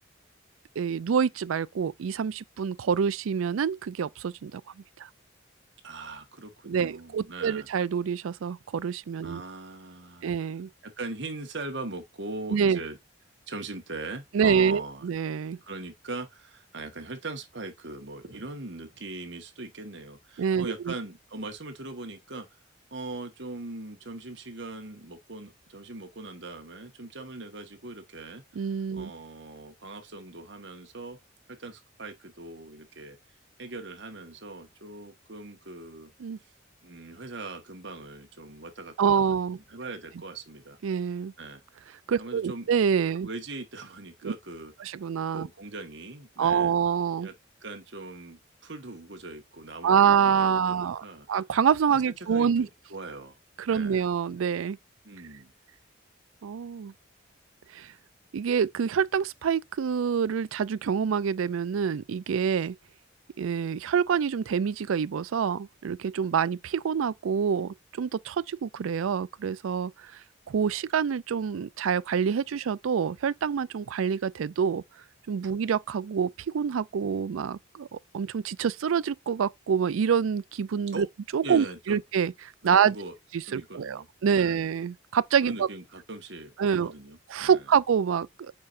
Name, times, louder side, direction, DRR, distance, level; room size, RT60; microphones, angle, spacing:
voice 1, 0.8-4.6 5.0-5.1 6.7-9.4 10.2-10.7 12.5-12.8 14.3-15.6 20.4-20.9 28.6-29.1 36.2-36.4 39.0-39.6 40.8-41.3 42.1-43.3 44.2-44.3 44.8-45.5 46.4-47.3 49.8-52.7 53.6-54.8 56.4-56.9 57.7-57.9 58.3-62.7 63.4-70.1 70.5-74.8 75.3-81.1 81.3-82.3 82.6-83.0 83.5-85.7 86.6-86.9 87.3-88.5, right 7 dB, 90° right, 0.4 m, -26 dB
voice 2, 5.8-7.7 9.2-10.3 10.8-13.0 13.5-15.1 15.6-22.5 22.9-28.7 28.9-31.2 31.5-33.2 33.6-36.1 36.8-40.8 41.4-41.6 42.2-42.7 43.2-44.7 45.3-46.7 47.2-47.3 47.6-51.3 51.9-53.4 53.7-54.0 55.0-55.5 80.9-81.1 81.4-82.0 82.6-83.1 83.5-84.6 85.4-87.6, right 2 dB, 60° right, 1.5 m, -40 dB
8.2 x 4.5 x 2.6 m
head